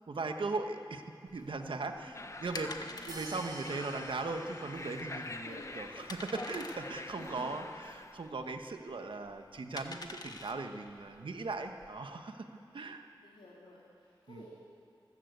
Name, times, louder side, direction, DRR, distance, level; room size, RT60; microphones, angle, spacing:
voice 1, 0.1-1.0 1.3-12.5 12.7-13.0 14.3-14.4, right 3 dB, 75° right, 6 dB, 1.5 m, -39 dB
sound 1, 1.3-11.9, left 2 dB, 50° left, 1.6 m, -49 dB
voice 2, 1.8-2.3 2.7-3.4 5.3-5.7 6.0-6.1 7.1-7.7 10.7-10.9 12.6-12.7 13.2-14.5, left 1 dB, 90° left, -6 dB, 3.3 m, -54 dB
sound 2, 2.1-8.3, left 2 dB, 35° left, 1.0 m, -45 dB
sound 3, 3.1-5.4, right 2 dB, 50° right, 2.6 m, -50 dB
24.5 x 15.0 x 8.2 m, 2.5 s
wide cardioid pair, 75°, 9 cm